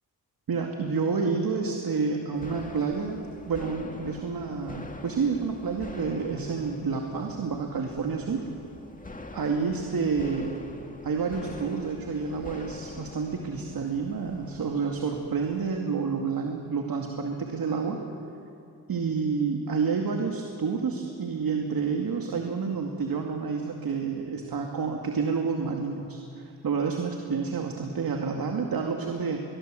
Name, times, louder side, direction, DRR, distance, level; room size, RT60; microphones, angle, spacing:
voice 1, 0.5-3.2 3.5-8.4 9.3-10.5 11.0-18.0 18.9-26.2 26.6-29.4, right 5 dB, 65° right, 2 dB, 2.3 m, -29 dB
sound 1, 2.3-15.8, left 2 dB, 20° left, 2.2 m, -44 dB
23.0 x 21.5 x 7.7 m, 2.6 s
cardioid pair, 55°, 38 cm